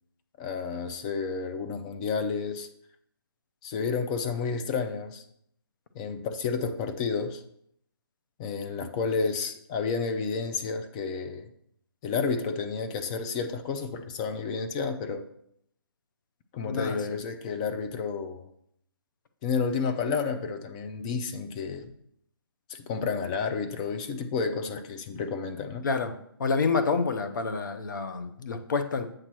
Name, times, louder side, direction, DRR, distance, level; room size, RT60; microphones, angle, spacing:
voice 1, 0.4-2.7 3.6-5.2 6.0-7.4 8.4-11.5 12.0-15.3 16.5-18.5 19.4-21.9 22.7-25.9, left 5 dB, 20° left, 0.4 m, -31 dB
voice 2, 16.6-17.0 25.8-29.1, left 4 dB, 55° left, 0.7 m, -28 dB
7.6 x 3.0 x 6.0 m
hypercardioid pair, 150°, 13 cm